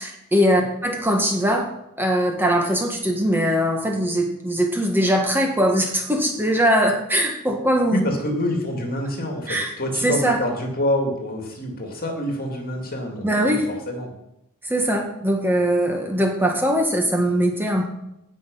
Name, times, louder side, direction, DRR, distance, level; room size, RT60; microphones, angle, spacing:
voice 1, 0.0-1.7 2.0-8.0 9.5-9.7 10.0-10.4 13.2-13.7 14.6-17.9, equal, 10° right, 2 dB, 1.4 m, -21 dB
voice 2, 7.9-14.1, left 1 dB, 45° left, 2 dB, 2.8 m, -27 dB
17.5 x 6.2 x 5.6 m, 0.86 s
head